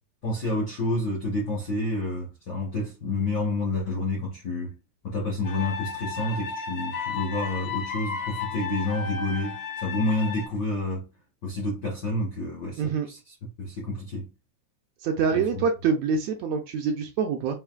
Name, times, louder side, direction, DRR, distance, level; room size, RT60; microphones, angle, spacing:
voice 1, 0.2-4.8 5.0-11.1 11.4-14.3 15.3-15.6, left 2 dB, 70° left, 1.0 m, -29 dB
sound 1, 5.4-10.5, left 6 dB, 85° left, 2.5 m, -34 dB
voice 2, 15.0-17.6, right 5 dB, 80° right, 1.6 m, -25 dB
5.6 x 2.5 x 2.3 m
omnidirectional pair, 3.4 m